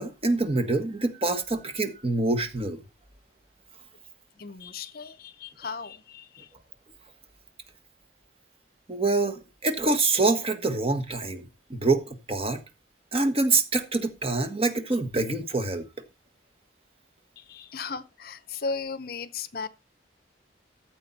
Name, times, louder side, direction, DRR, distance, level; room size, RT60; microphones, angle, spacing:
voice 1, 0.0-2.8 8.9-11.4 11.7-12.6 13.1-15.9, right 3 dB, 30° right, 1.5 m, -25 dB
voice 2, 4.4-6.5 17.4-19.7, left 4 dB, 50° left, 0.7 m, -36 dB
14.0 x 7.8 x 4.1 m
head